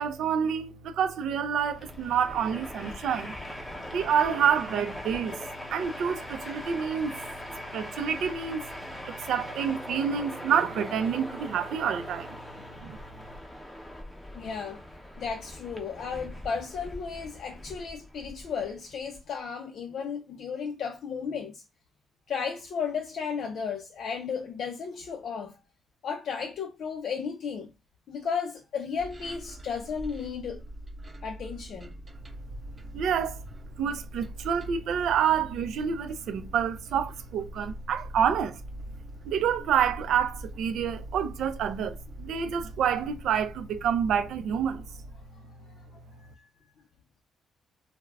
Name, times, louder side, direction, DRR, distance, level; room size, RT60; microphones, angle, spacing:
voice 1, 0.0-3.3 3.9-5.4 5.7-7.2 7.7-8.6 9.0-12.4 12.8-13.0 32.9-33.4 33.8-38.6 39.3-44.9, right 8 dB, 75° right, 0.4 m, -28 dB
Train, 1.6-19.2, left 1 dB, 10° left, 0.7 m, -41 dB
voice 2, 14.3-14.8 15.2-21.6 22.3-25.6 26.0-27.7 28.1-30.6 31.2-31.9 45.8-45.9 46.4-46.5, left 6 dB, 65° left, 0.4 m, -34 dB
sound 1, 29.0-45.3, right 1 dB, 30° right, 0.6 m, -43 dB
2.3 x 2.0 x 3.3 m
cardioid pair, 90°, 0 cm